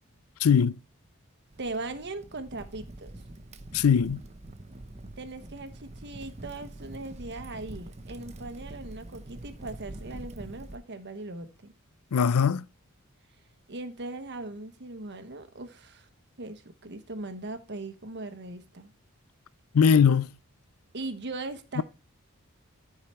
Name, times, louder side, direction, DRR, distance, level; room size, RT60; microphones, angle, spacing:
voice 1, 0.4-0.8 3.7-4.2 12.1-12.6 19.7-20.3, left 7 dB, 90° left, 0.5 m, -20 dB
Crackle, 1.5-10.8, right 1 dB, 30° right, 0.8 m, -45 dB
voice 2, 1.6-3.2 5.2-11.7 13.7-16.1 16.4-18.9 20.9-21.8, right 2 dB, 55° right, 1.2 m, -39 dB
13.5 x 4.9 x 4.4 m
head